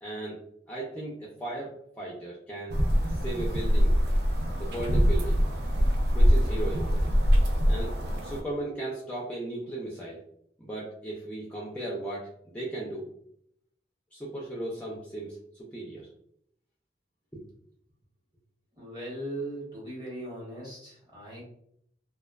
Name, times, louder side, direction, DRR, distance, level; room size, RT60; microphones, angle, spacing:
voice 1, 0.0-2.8 3.1-3.9 4.6-5.4 6.1-6.9 7.7-7.9 8.2-10.2 10.6-13.1 14.1-16.1 17.3-17.4, right 2 dB, 10° left, -5 dB, 0.3 m, -36 dB
sound 1, 2.7-8.4, equal, 60° right, 0.4 m, -24 dB
voice 2, 18.7-21.4, right 1 dB, 20° right, -5 dB, 1.0 m, -38 dB
2.5 x 2.2 x 2.2 m, 0.68 s
head